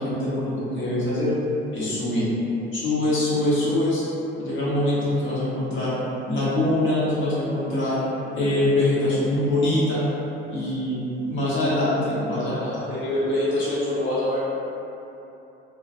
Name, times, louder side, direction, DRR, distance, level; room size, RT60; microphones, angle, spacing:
voice 1, 0.0-1.3 1.7-2.3 2.7-4.0 4.4-5.9 6.3-8.0 8.3-10.0 10.5-14.4, left 1 dB, 40° left, -9 dB, 1.0 m, -24 dB
2.3 x 2.2 x 2.8 m, 2.9 s
figure-of-eight pair, 55°, 30 cm